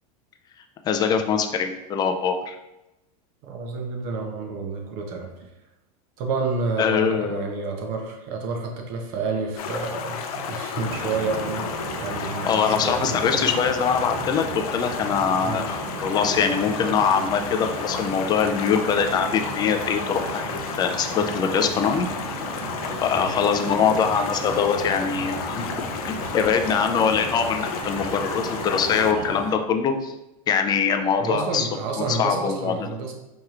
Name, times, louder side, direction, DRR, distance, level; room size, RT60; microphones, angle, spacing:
voice 1, 0.8-2.6 6.8-7.5 12.2-20.5 20.8-22.2 23.0-25.7 26.1-30.1 30.5-31.7 32.0-32.9, left 6 dB, 20° left, 5 dB, 0.4 m, -23 dB
voice 2, 3.4-5.5 6.2-13.5 15.4-15.7 23.1-23.3 31.2-33.1, right 4 dB, 50° right, 2 dB, 0.8 m, -30 dB
Stream, 9.6-29.1, left 6 dB, 75° left, 0.5 m, -33 dB
sound 1, 10.8-29.5, right 3 dB, 90° right, 0.8 m, -35 dB
4.6 x 2.9 x 2.4 m, 0.94 s
supercardioid pair, 130°, 19 cm